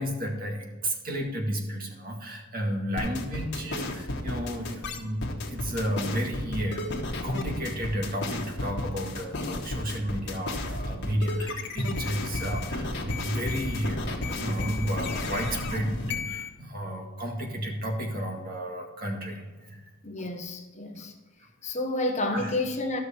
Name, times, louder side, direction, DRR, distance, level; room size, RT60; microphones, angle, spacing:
voice 1, 0.0-19.9 20.2-20.3 21.4-21.5 22.3-22.5, equal, 45° right, 1.9 m, -32 dB
sound 1, 3.0-16.5, left 2 dB, 55° left, 1.6 m, -32 dB
voice 2, 20.0-21.1 21.6-23.0, left 2 dB, 35° left, 1.1 m, -30 dB
13.0 x 6.3 x 4.3 m
head